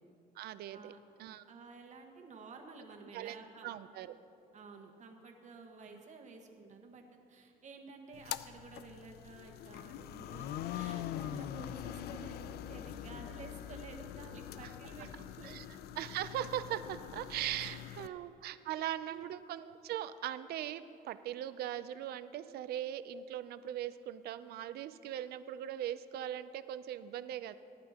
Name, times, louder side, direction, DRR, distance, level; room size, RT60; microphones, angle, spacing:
voice 1, 0.4-0.9 1.2-1.4 3.1-4.2 5.9-6.0 15.0-15.1 15.4-15.7 16.0-27.6, right 11 dB, 70° right, 13 dB, 0.5 m, -40 dB
voice 2, 1.5-3.7 4.5-15.6 17.6-18.2 18.7-18.8 19.1-19.3, right 4 dB, 45° right, 2 dB, 1.5 m, -52 dB
sound 1, 8.1-18.1, left 11 dB, 70° left, 0.4 m, -43 dB
18.5 x 11.5 x 2.9 m, 2.6 s
cardioid pair, 110°, 17 cm